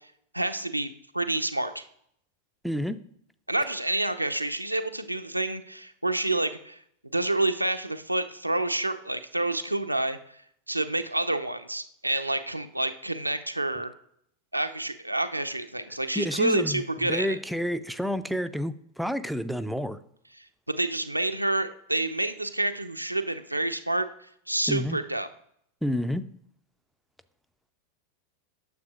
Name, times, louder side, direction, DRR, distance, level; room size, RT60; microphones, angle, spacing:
voice 1, 0.3-1.8 3.5-6.8 7.1-10.2 10.7-13.9 14.5-17.4 20.7-24.1 24.5-25.3, right 2 dB, 85° right, 9 dB, 0.5 m, -28 dB
voice 2, 2.6-3.1 16.2-20.0 24.7-25.0 25.8-26.2, equal, ahead, 12 dB, 0.4 m, -29 dB
9.3 x 7.1 x 2.4 m, 0.69 s
figure-of-eight pair, 90°, 0 cm